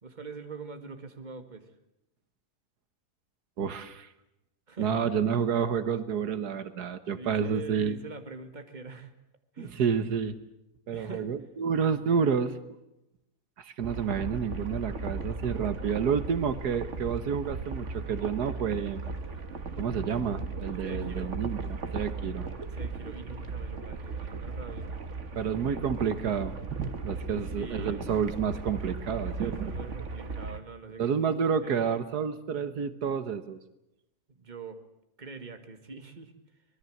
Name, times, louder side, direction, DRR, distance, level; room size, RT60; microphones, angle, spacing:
voice 1, 0.0-1.7 4.7-5.5 7.1-9.1 9.5-9.8 10.9-11.3 20.9-21.4 22.7-24.9 27.6-28.0 29.2-31.1 31.6-31.9 34.4-34.8 35.2-36.3, right 4 dB, 30° right, 7 dB, 2.1 m, -44 dB
voice 2, 3.6-4.1 4.8-8.0 9.6-10.4 10.9-12.6 13.6-19.0 19.8-22.5 25.4-29.7 31.0-33.6, right 7 dB, 80° right, 12 dB, 1.8 m, -29 dB
sound 1, 13.8-30.6, right 4 dB, 50° right, 1.9 m, -37 dB
25.0 x 20.5 x 7.9 m, 0.86 s
omnidirectional pair, 1.7 m